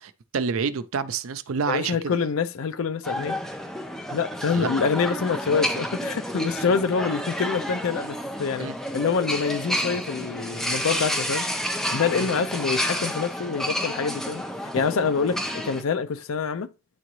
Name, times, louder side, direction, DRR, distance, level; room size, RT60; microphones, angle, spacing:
voice 1, 0.0-2.2 4.5-4.7 8.6-8.7 12.1-12.3, right 5 dB, 80° right, 0.5 m, -28 dB
voice 2, 1.7-3.4 4.1-8.7 8.9-11.5 11.9-16.7, left 5 dB, 75° left, 0.5 m, -26 dB
sound 1, 3.0-15.8, equal, ahead, 0.7 m, -30 dB
9.3 x 3.8 x 3.1 m
head